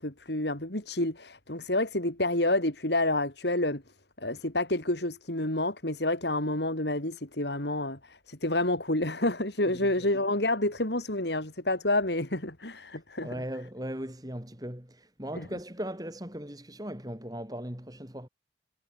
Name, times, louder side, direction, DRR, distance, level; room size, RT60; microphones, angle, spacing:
voice 1, 0.0-3.8 4.2-13.4 15.3-15.5, left 1 dB, 65° left, 4.0 m, -29 dB
voice 2, 13.2-18.3, equal, 20° right, 3.2 m, -38 dB
head